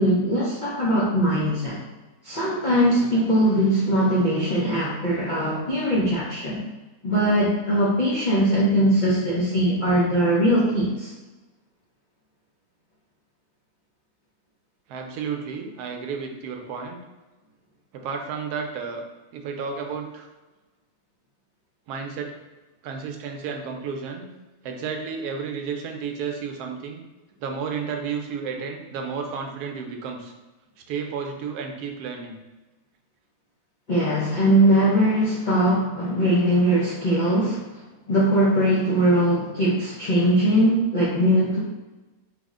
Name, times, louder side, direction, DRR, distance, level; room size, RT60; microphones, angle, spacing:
voice 1, 0.0-1.8 2.2-6.6 7.0-11.1 33.9-37.6 38.1-41.6, right 1 dB, 80° left, -6 dB, 0.4 m, -21 dB
voice 2, 14.9-17.0 17.9-19.0 19.3-20.3 21.9-22.3 22.8-24.3 24.6-27.0 27.4-30.3 30.9-32.4, right 6 dB, 80° right, 3 dB, 1.1 m, -32 dB
3.5 x 2.1 x 3.5 m, 1.2 s
omnidirectional pair, 1.7 m